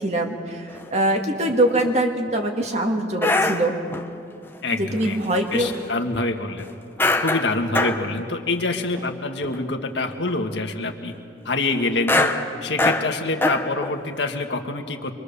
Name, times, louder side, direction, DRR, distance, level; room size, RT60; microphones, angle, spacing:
voice 1, 0.0-3.7 4.7-5.7, right 1 dB, 40° right, 2 dB, 2.0 m, -23 dB
sound 1, 0.7-0.8 1.4-1.9 2.3-2.7 3.2-4.1 5.0-5.8 6.1-6.2 7.0-8.1 8.5-8.6 8.9-9.1 9.4-9.8 10.1-10.3 12.0-14.0 14.3-14.4, left 2 dB, 10° left, 0.9 m, -24 dB
voice 2, 4.6-5.2 5.5-6.7 7.2-11.2 11.5-12.3 12.6-15.1, left 2 dB, 80° left, 4 dB, 1.6 m, -26 dB
25.5 x 23.5 x 6.9 m, 2.5 s
head